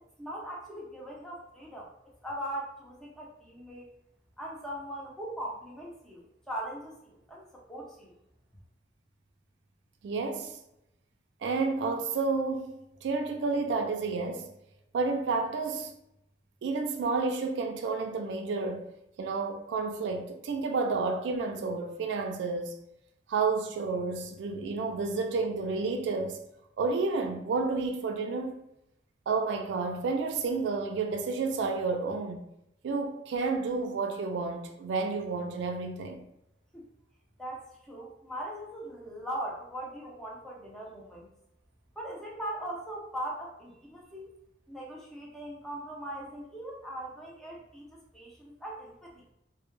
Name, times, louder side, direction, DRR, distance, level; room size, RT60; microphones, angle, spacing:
voice 1, 0.2-1.9 2.2-3.9 4.4-8.1 36.7-36.8 37.4-41.3 42.0-44.3 44.7-49.2, right 1 dB, 5° left, 0.5 m, -40 dB
voice 2, 10.0-10.6 11.4-14.5 14.9-15.9 16.6-18.9 19.2-22.8 23.3-26.4 26.8-28.6 29.3-32.4 32.8-36.2, right 4 dB, 70° right, 0.3 m, -30 dB
2.1 x 2.0 x 3.0 m
head